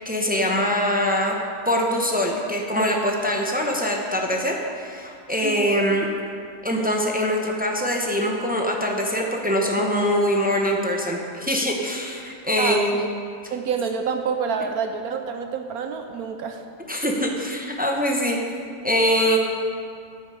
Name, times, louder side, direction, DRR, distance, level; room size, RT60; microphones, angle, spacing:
voice 1, 0.0-1.4 1.6-6.1 6.6-13.0 13.4-13.5 16.9-18.4 18.8-19.4, equal, 10° right, 0 dB, 0.5 m, -23 dB
voice 2, 5.4-5.8 12.6-13.1 13.5-16.6, right 6 dB, 70° right, 6 dB, 1.0 m, -28 dB
13.5 x 7.5 x 4.8 m, 2.3 s
omnidirectional pair, 1.8 m